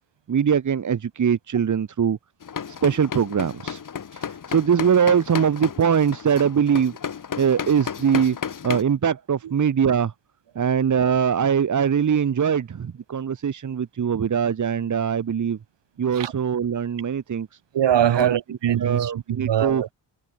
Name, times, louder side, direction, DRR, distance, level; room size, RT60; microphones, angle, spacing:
voice 1, 0.3-2.2 2.8-3.8 4.1-6.9 7.4-8.4 8.6-10.1 10.6-15.6 16.0-17.5 18.1-18.3 18.8-19.8, right 7 dB, 40° right, 2.0 m, -22 dB
sound 1, 2.4-8.8, left 7 dB, 45° left, 5.4 m, -33 dB
voice 2, 17.7-19.9, right 10 dB, 65° right, 6.6 m, -22 dB
cardioid pair, 145°, 45 cm